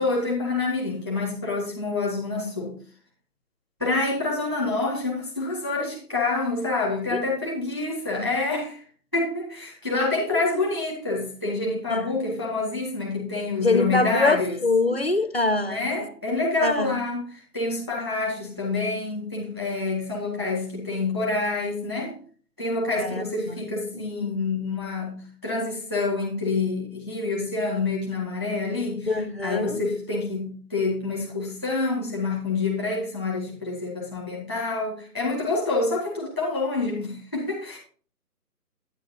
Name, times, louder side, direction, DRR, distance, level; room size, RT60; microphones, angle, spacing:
voice 1, 0.0-2.7 3.8-8.8 9.1-14.6 15.6-22.2 22.6-29.1 29.4-37.8, left 3 dB, 10° right, 1.4 m, -27 dB
voice 2, 13.6-15.9 16.6-17.0 23.0-23.6 23.9-24.4 29.1-29.8, left 3 dB, 40° left, 0.5 m, -25 dB
9.6 x 9.2 x 2.7 m
hypercardioid pair, 170°, 48 cm